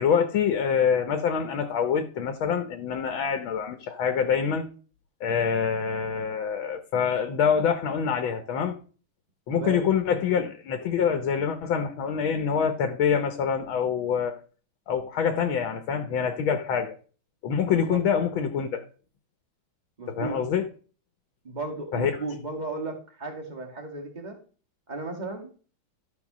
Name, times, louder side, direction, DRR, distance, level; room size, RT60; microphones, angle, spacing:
voice 1, 0.0-4.7 5.2-8.8 9.5-14.4 14.9-16.9 17.4-18.8 20.1-20.6 21.9-22.2, left 7 dB, 90° left, 1.8 m, -25 dB
voice 2, 9.5-9.9 17.9-18.0 20.0-20.4 21.4-24.4 24.9-25.5, right 3 dB, 20° right, 2.2 m, -35 dB
13.0 x 4.4 x 6.1 m
omnidirectional pair, 2.1 m